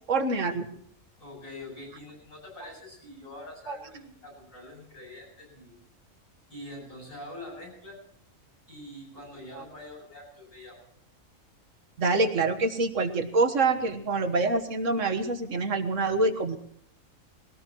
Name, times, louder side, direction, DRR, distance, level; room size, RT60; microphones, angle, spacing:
voice 1, 0.1-0.7 3.7-3.8 9.5-9.6 12.0-16.6, right 3 dB, 70° right, 8 dB, 1.7 m, -26 dB
voice 2, 1.2-5.8 6.5-8.0 8.7-10.8, left 1 dB, 85° left, -1 dB, 8.6 m, -44 dB
21.5 x 18.0 x 3.0 m, 0.69 s
omnidirectional pair, 1.4 m